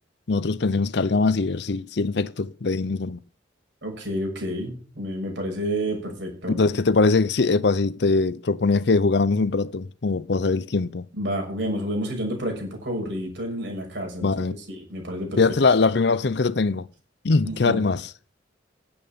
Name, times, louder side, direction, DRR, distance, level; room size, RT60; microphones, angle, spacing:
voice 1, 0.3-3.2 6.5-11.0 14.2-14.6 15.4-16.9 17.2-18.1, left 3 dB, 60° left, 0.6 m, -22 dB
voice 2, 3.8-6.6 11.2-14.3 14.7-15.4 17.4-17.8, equal, 65° right, 6.1 m, -29 dB
10.5 x 8.7 x 7.1 m
head